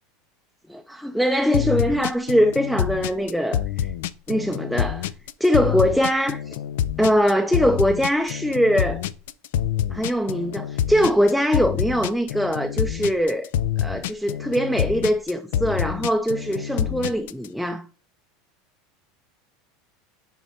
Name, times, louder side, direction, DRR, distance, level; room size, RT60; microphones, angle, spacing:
voice 1, 0.7-3.9 4.3-5.1 5.4-6.6 7.0-9.0 9.9-13.5 13.8-17.9, equal, ahead, 0.4 m, -22 dB
sound 1, 1.5-17.5, left 10 dB, 80° left, 0.3 m, -26 dB
10.0 x 4.2 x 2.7 m
supercardioid pair, 120°, 0 cm